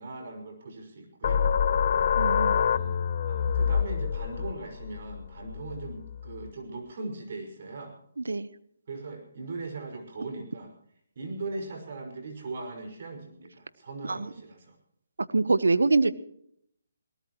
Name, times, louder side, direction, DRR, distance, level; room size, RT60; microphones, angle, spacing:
voice 1, 0.0-1.5 2.6-7.9 8.9-10.7 11.2-14.8, right 3 dB, 55° right, 4 dB, 5.7 m, -39 dB
sound 1, 1.2-6.5, left 7 dB, 50° left, 0.8 m, -27 dB
voice 2, 2.2-2.6 8.2-8.5 14.1-14.2 15.3-16.1, right 3 dB, 85° right, 15 dB, 1.1 m, -24 dB
22.5 x 18.5 x 3.1 m, 0.68 s
hypercardioid pair, 155°, 0 cm